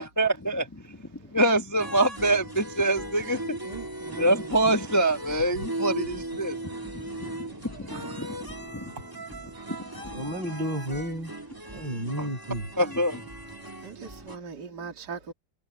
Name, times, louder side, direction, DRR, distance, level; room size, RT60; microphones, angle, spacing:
voice 1, 0.0-1.0 1.3-3.6 4.2-6.6 6.9-7.3 7.6-8.8 12.2-12.3 12.8-13.2, right 1 dB, 15° left, 0.8 m, -25 dB
sound 1, 1.8-14.4, right 1 dB, 10° right, 1.9 m, -38 dB
voice 2, 3.6-4.6 6.6-9.9 11.6-11.9 13.6-15.3, right 5 dB, 60° right, 2.8 m, -44 dB
voice 3, 10.1-11.3 11.7-12.7, right 1 dB, 80° right, 6.6 m, -32 dB
omnidirectional pair, 2.0 m